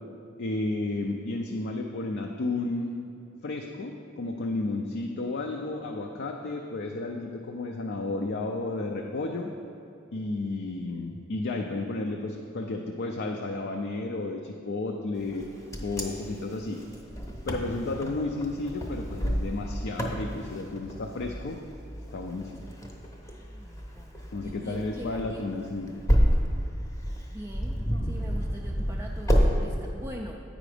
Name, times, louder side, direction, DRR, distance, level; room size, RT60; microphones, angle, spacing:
voice 1, 0.4-3.0 3.4-9.5 10.1-15.4 15.8-16.8 17.5-21.6 22.1-22.7 24.3-26.0, left 2 dB, 60° left, 2 dB, 0.4 m, -32 dB
Wind, 15.3-29.5, equal, 15° left, 0.7 m, -29 dB
voice 2, 23.3-24.1 24.4-25.7 27.1-30.4, equal, 15° right, -1 dB, 0.3 m, -43 dB
8.5 x 5.0 x 4.9 m, 2.6 s
head